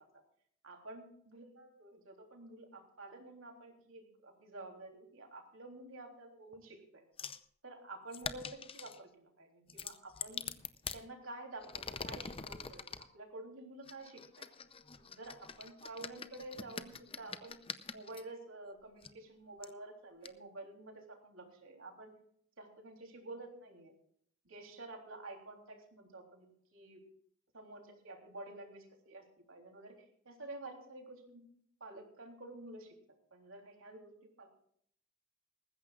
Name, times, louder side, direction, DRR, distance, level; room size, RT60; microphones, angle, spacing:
voice 1, 0.6-7.0 7.6-10.5 10.9-14.5 14.9-17.6 17.9-22.1 22.6-23.9 24.5-26.5 26.7-27.0 27.5-30.0 30.3-31.4 31.8-32.9 33.3-34.1 34.4-34.5, right 2 dB, 85° right, 2 dB, 3.4 m, -50 dB
sound 1, 7.2-7.4 8.1-9.0 9.7-11.0 11.6-13.0 13.9-18.2 19.0-19.1 19.6-19.7 20.2-20.3, left 6 dB, 30° left, 0.7 m, -44 dB
19.5 x 15.5 x 2.5 m, 0.65 s
head